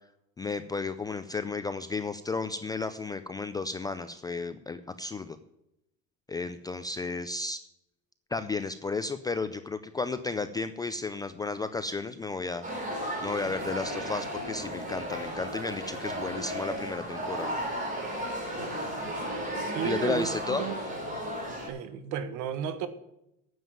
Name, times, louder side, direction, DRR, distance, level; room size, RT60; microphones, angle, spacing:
voice 1, 0.4-5.4 6.3-7.6 8.3-12.6 13.2-17.6 19.8-20.6, left 3 dB, 10° left, 10 dB, 0.3 m, -33 dB
sound 1, 12.6-21.7, equal, 25° right, 3.9 m, -34 dB
voice 2, 19.5-20.8 21.6-22.9, right 9 dB, 60° right, 11 dB, 1.5 m, -33 dB
9.4 x 7.2 x 9.0 m, 0.83 s
cardioid pair, 155°, 33 cm